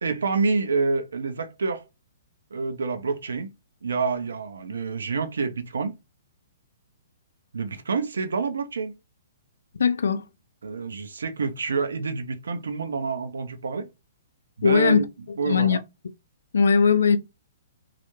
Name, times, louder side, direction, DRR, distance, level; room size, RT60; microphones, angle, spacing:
voice 1, 0.0-1.8 2.5-3.5 3.8-6.0 7.5-9.0 10.6-13.9 14.6-15.0 15.4-15.8, right 4 dB, 80° right, 0.4 m, -27 dB
voice 2, 9.8-10.2 14.6-15.0 15.5-15.8 16.5-17.2, left 6 dB, 80° left, 0.3 m, -19 dB
2.3 x 2.1 x 2.9 m
hypercardioid pair, 130°, 0 cm